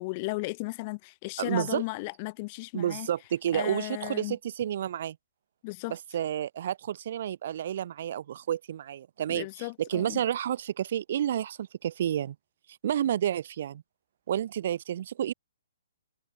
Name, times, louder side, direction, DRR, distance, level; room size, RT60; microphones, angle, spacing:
voice 1, 0.0-3.1 3.5-4.4 5.6-6.0 9.3-10.2, left 26 dB, 35° left, 1.0 m, -35 dB
voice 2, 1.4-1.8 2.7-5.2 5.9-12.3 12.8-13.8 14.3-15.3, right 10 dB, 55° right, 3.0 m, -30 dB
hypercardioid pair, 140°, 0 cm